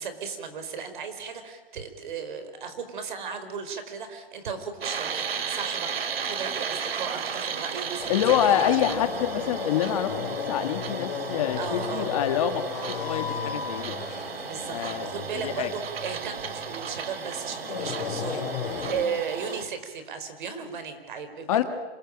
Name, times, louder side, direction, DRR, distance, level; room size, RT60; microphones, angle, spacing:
voice 1, 0.0-8.6 11.6-12.1 14.4-21.6, right 6 dB, 55° right, 8 dB, 4.8 m, -35 dB
sound 1, 4.8-19.7, right 6 dB, 90° right, 2.8 m, -34 dB
sound 2, 8.0-19.0, left 7 dB, 55° left, 5.6 m, -35 dB
voice 2, 8.1-14.0 14.7-15.1 15.4-15.7 21.5-21.6, left 10 dB, 35° left, 8 dB, 1.8 m, -26 dB
27.0 x 20.0 x 8.9 m, 1.3 s
hypercardioid pair, 175°, 29 cm